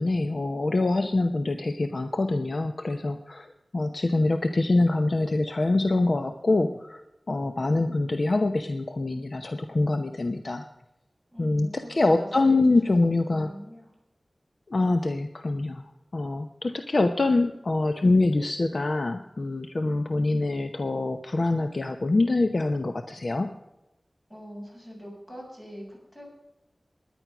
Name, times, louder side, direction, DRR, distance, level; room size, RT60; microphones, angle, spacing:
voice 1, 0.0-7.0 7.3-10.7 11.4-13.5 14.7-23.5, left 2 dB, 60° left, 7 dB, 0.8 m, -25 dB
voice 2, 11.3-13.9 24.3-26.4, equal, 25° left, -1 dB, 7.6 m, -43 dB
17.5 x 11.0 x 6.0 m, 0.95 s
wide cardioid pair, 70°, 0 cm